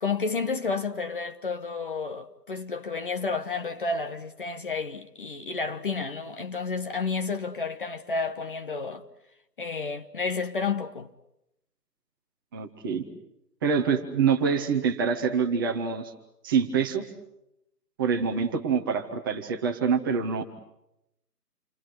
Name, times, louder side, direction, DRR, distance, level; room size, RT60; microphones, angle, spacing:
voice 1, 0.0-9.0 9.6-11.1, left 4 dB, 35° left, 1.2 m, -31 dB
voice 2, 12.5-13.0 13.6-16.1 16.4-17.0 18.0-20.4, right 6 dB, 15° right, 1.4 m, -25 dB
29.5 x 24.0 x 8.1 m
figure-of-eight pair, 160°, 48 cm